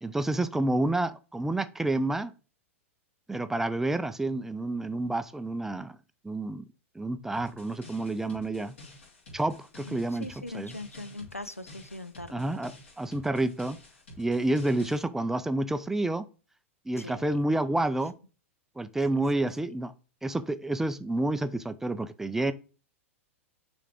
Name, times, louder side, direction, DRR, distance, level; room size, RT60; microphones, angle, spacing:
voice 1, 0.0-2.3 3.3-6.0 6.2-6.7 7.0-8.7 9.3-10.3 10.5-10.7 12.3-12.7 13.0-13.8 14.2-16.3 16.9-18.1 18.8-19.9 20.2-22.5, right 2 dB, 5° right, 0.3 m, -29 dB
sound 1, 7.3-15.0, left 2 dB, 65° left, 3.0 m, -50 dB
voice 2, 9.8-12.6 17.0-17.3 19.6-19.7, left 1 dB, 90° left, 0.5 m, -41 dB
6.5 x 3.5 x 5.0 m
figure-of-eight pair, 95°, 7 cm